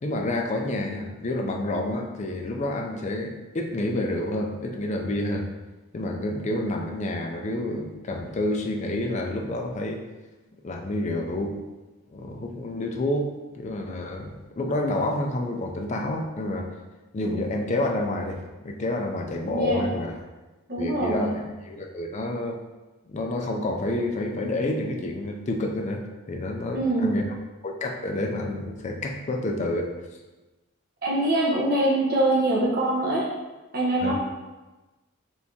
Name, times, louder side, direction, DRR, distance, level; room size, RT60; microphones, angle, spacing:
voice 1, 0.0-5.5 5.9-10.0 10.6-11.6 12.1-16.7 17.1-20.2 20.8-22.6 23.1-27.2 27.6-29.9 34.0-34.1, left 1 dB, 35° left, 2 dB, 0.4 m, -29 dB
voice 2, 19.4-19.9 20.7-21.3 26.7-27.2 31.0-33.3 33.7-34.1, right 1 dB, 45° right, -4 dB, 0.9 m, -24 dB
4.4 x 3.4 x 2.8 m, 1.1 s
head